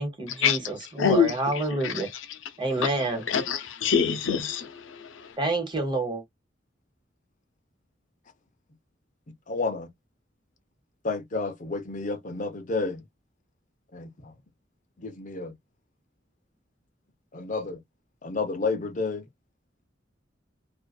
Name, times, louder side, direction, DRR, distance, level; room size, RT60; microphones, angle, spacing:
voice 1, 0.0-2.1 2.6-3.3 5.4-6.2, right 2 dB, 25° right, 1.1 m, -28 dB
voice 2, 3.3-5.3, left 6 dB, 85° left, 0.6 m, -24 dB
voice 3, 9.5-9.9 11.0-13.0 13.9-14.1 15.0-15.5 17.3-17.8 18.2-19.2, left 3 dB, 40° left, 0.6 m, -30 dB
2.5 x 2.4 x 2.2 m
head